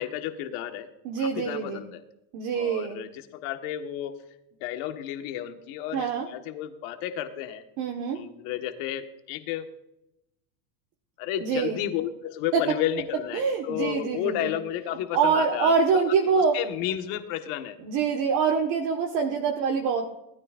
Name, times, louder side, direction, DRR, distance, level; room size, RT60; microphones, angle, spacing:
voice 1, 0.0-0.9 1.2-2.0 2.5-4.2 4.6-7.6 8.1-9.7 11.2-16.0 16.3-17.8, left 11 dB, 50° left, 6 dB, 1.5 m, -32 dB
voice 2, 1.0-1.8 2.3-3.0 5.9-6.3 7.8-8.2 11.4-11.8 12.5-12.6 13.3-14.5 15.1-16.6 17.8-20.1, right 5 dB, 40° right, 1 dB, 1.5 m, -25 dB
19.5 x 13.5 x 2.5 m, 0.86 s
supercardioid pair, 155°, 46 cm